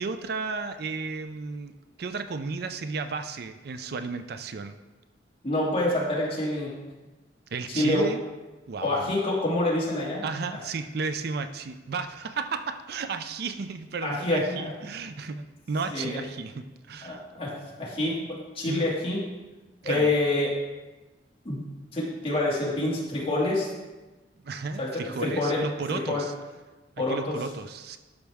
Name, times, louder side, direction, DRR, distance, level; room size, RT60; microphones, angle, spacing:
voice 1, 0.0-1.7 2.0-4.7 7.5-8.2 8.7-9.1 10.2-17.2 18.7-18.9 19.8-20.1 24.4-26.3 27.1-28.0, right 4 dB, 60° right, 10 dB, 0.4 m, -33 dB
voice 2, 5.4-6.8 7.7-8.1 8.8-10.2 14.0-14.7 15.9-16.2 17.0-19.2 19.8-20.5 21.4-23.7 24.8-24.9 25.2-25.6 25.9-26.2 27.0-27.4, left 2 dB, 30° left, -6 dB, 2.3 m, -27 dB
12.0 x 5.2 x 3.5 m, 1.1 s
head